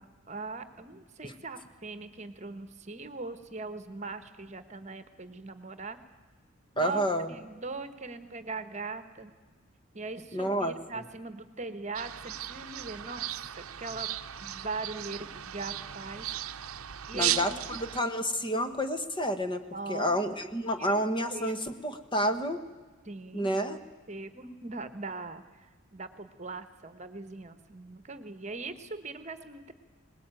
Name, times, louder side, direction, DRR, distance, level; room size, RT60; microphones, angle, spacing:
voice 1, 0.0-6.0 6.7-9.3 9.9-13.3 13.6-14.2 14.4-16.3 17.1-17.8 19.7-20.2 20.8-21.0 21.3-21.5 23.0-23.5 24.1-25.7 25.9-29.7, right 3 dB, 35° right, 11 dB, 1.2 m, -40 dB
voice 2, 6.8-7.3 10.3-10.7 17.1-19.6 19.9-22.6 23.3-23.8, equal, 20° left, 8 dB, 1.3 m, -29 dB
sound 1, 11.9-18.0, right 12 dB, 90° right, 0.7 m, -36 dB
22.0 x 19.5 x 9.0 m, 1.4 s
head